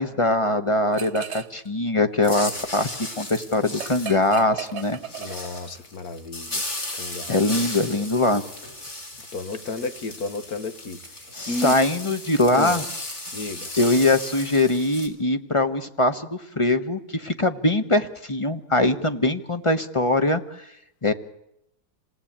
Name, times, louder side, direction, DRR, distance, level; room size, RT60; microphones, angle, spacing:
voice 1, 0.0-2.9 3.2-5.0 5.2-5.3 7.3-8.4 11.3-12.8 13.8-20.4 21.0-21.1, left 2 dB, 20° left, 8 dB, 1.2 m, -22 dB
sound 1, 0.9-1.7 2.0-5.8, right 9 dB, 45° right, 1.3 m, -37 dB
sound 2, 2.2-15.1, left 1 dB, 45° left, 4.0 m, -35 dB
voice 2, 5.2-6.6 7.0-7.7 9.3-11.0 11.5-11.8 12.5-12.8 13.3-13.7, left 2 dB, 65° left, 10 dB, 1.9 m, -32 dB
28.0 x 18.5 x 8.8 m, 0.81 s
omnidirectional pair, 1.7 m